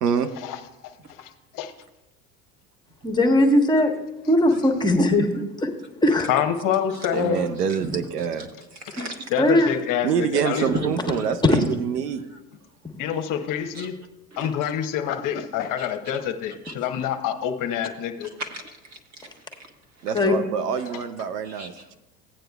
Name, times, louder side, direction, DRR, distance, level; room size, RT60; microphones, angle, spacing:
voice 1, 0.4-1.7 6.3-7.5 8.8-8.9 9.3-10.7 13.0-13.9 14.4-18.3, left 9 dB, 45° left, 6 dB, 0.9 m, -27 dB
voice 2, 3.0-3.9 4.3-5.3 5.6-5.7 6.0-6.3 9.4-9.8 11.4-11.6 20.1-20.3, left 1 dB, 10° left, 2 dB, 1.2 m, -19 dB
voice 3, 7.1-8.5 10.0-12.2 20.0-21.9, right 7 dB, 80° right, 10 dB, 0.8 m, -26 dB
voice 4, 7.8-8.3 8.9-9.3 9.5-9.7 10.4-11.3 13.7-13.9 14.3-14.5 15.6-15.9 16.6-16.7 18.4-19.3 20.8-21.0 21.4-21.9, right 2 dB, 35° right, 5 dB, 1.3 m, -34 dB
15.5 x 9.0 x 2.3 m, 0.98 s
figure-of-eight pair, 75°, 47 cm